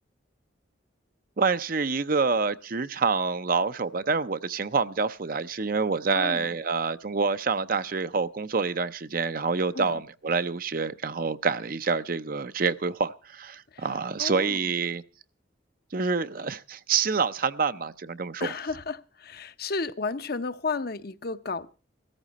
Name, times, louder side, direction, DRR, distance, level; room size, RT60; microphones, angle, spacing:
voice 1, 1.4-15.0 15.9-18.5, right 4 dB, 45° right, 0.6 m, -27 dB
voice 2, 6.1-6.5 9.7-9.9 13.7-13.9 14.2-14.7 18.4-21.7, left 4 dB, 50° left, 0.7 m, -33 dB
16.5 x 14.0 x 4.1 m
head